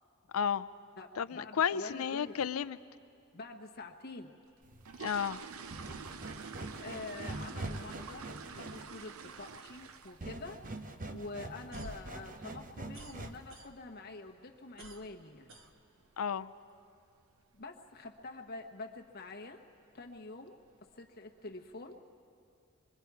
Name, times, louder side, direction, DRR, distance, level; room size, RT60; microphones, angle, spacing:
voice 1, 0.3-0.7 1.2-2.8 5.0-5.4 16.2-16.5, left 7 dB, 85° left, 16 dB, 0.5 m, -32 dB
voice 2, 1.0-2.4 3.3-4.3 6.8-10.6 11.1-15.5 17.5-19.6 19.9-22.0, left 2 dB, 50° left, 3 dB, 1.1 m, -46 dB
sound 1, 4.5-10.4 10.7-11.0 11.3-11.4 11.8-11.9 12.3-12.5 12.8-12.9 13.5-13.6 13.8-14.0 14.5-14.8 15.1-15.2 15.6-15.8 16.1-16.2 16.6-16.7 17.3-17.6 18.0-18.3 18.7-18.8 19.2-19.3 20.0-20.2 20.6-21.1 21.5-21.6, right 6 dB, 85° right, 0.7 m, -48 dB
sound 2, 4.6-13.6, right 2 dB, 40° right, 0.8 m, -44 dB
sound 3, 11.5-14.1 14.4-16.3, right 1 dB, 65° right, 1.2 m, -51 dB
25.5 x 22.0 x 4.7 m, 2.5 s
head